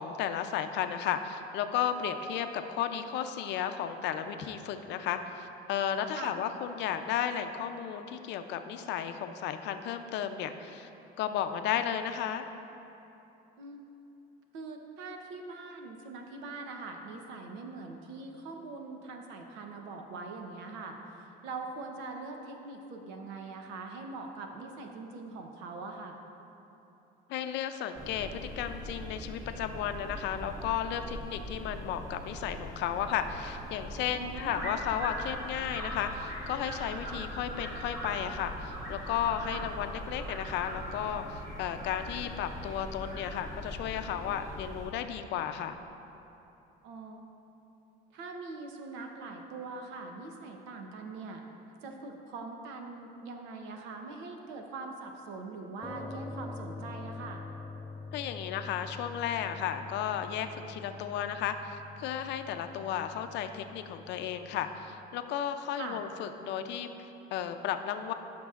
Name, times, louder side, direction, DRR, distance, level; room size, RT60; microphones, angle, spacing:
voice 1, 0.0-10.9 11.2-12.4 27.3-45.8 58.1-68.1, left 9 dB, 70° left, 8 dB, 0.5 m, -34 dB
voice 2, 14.5-26.2 34.1-34.7 39.5-39.7 46.8-47.2 48.1-51.4 51.8-57.4 65.8-66.0, right 3 dB, 90° right, 3 dB, 0.9 m, -42 dB
sound 1, 27.9-44.9, equal, 20° right, 1.8 m, -41 dB
sound 2, 55.8-64.9, left 3 dB, 10° left, 0.5 m, -45 dB
14.0 x 6.0 x 2.5 m, 2.9 s
cardioid pair, 115°, 19 cm